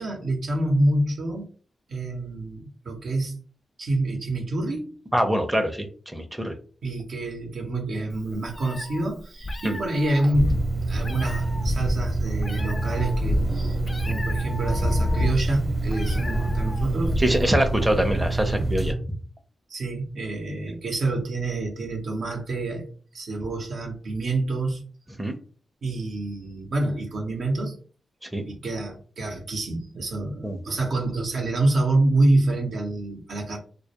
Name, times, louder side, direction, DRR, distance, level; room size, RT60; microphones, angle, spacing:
voice 1, 0.0-1.5 1.9-3.4 3.8-5.0 6.8-17.2 19.7-22.9 23.1-24.8 25.8-27.8 28.4-33.6, right 2 dB, 75° right, 1 dB, 0.7 m, -27 dB
voice 2, 5.1-6.5 9.6-9.8 17.2-18.9 25.2-25.3 28.2-28.4 30.4-30.6, equal, 10° right, 5 dB, 0.5 m, -24 dB
Meow, 8.1-17.5, left 1 dB, 40° left, 0.3 m, -29 dB
sound 1, 10.3-18.9, right 2 dB, 35° right, 0.9 m, -27 dB
2.2 x 2.1 x 2.8 m, 0.41 s
cardioid pair, 55°, 0 cm